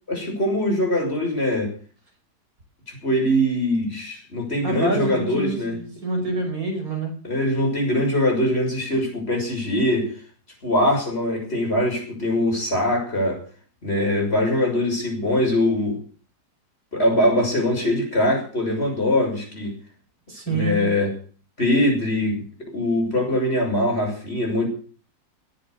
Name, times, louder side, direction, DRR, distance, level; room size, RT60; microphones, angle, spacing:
voice 1, 0.1-1.7 2.9-5.7 7.2-10.1 10.6-13.4 13.8-16.0 16.9-19.7 20.5-21.1 21.6-22.4 22.7-24.7, left 1 dB, 40° left, 1 dB, 6.5 m, -22 dB
voice 2, 4.6-7.1 20.3-20.9, right 2 dB, 60° right, 3 dB, 5.7 m, -27 dB
18.0 x 7.9 x 8.0 m, 0.41 s
omnidirectional pair, 1.7 m